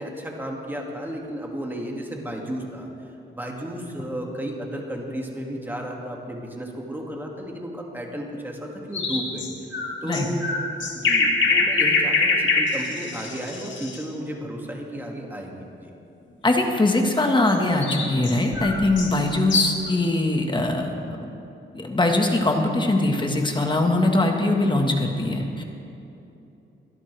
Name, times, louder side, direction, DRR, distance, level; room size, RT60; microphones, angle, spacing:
voice 1, 0.0-2.9 3.3-9.5 10.0-10.5 11.0-15.9, equal, 10° right, -1 dB, 2.3 m, -33 dB
sound 1, 8.9-14.0 17.5-19.9, left 4 dB, 70° left, 2.1 m, -24 dB
voice 2, 16.4-21.3 21.7-25.6, left 2 dB, 25° left, 3 dB, 1.6 m, -22 dB
22.0 x 13.0 x 3.4 m, 2.8 s
cardioid pair, 105°, 20 cm